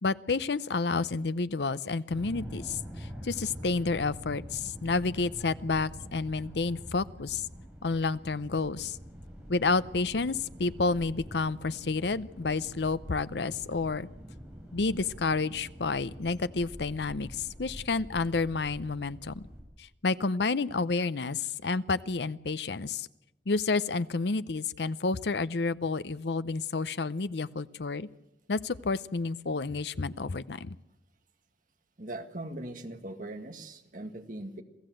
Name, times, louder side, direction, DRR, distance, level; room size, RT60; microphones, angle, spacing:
voice 1, 0.0-7.4 7.8-9.0 9.5-14.1 14.7-19.4 19.8-23.1 23.5-28.1 28.5-30.8, left 3 dB, 70° left, 16 dB, 0.7 m, -30 dB
sound 1, 2.1-19.6, equal, 5° right, 7.3 m, -45 dB
voice 2, 32.0-34.6, right 1 dB, 50° right, 6 dB, 1.8 m, -40 dB
27.0 x 16.0 x 7.8 m, 0.94 s
head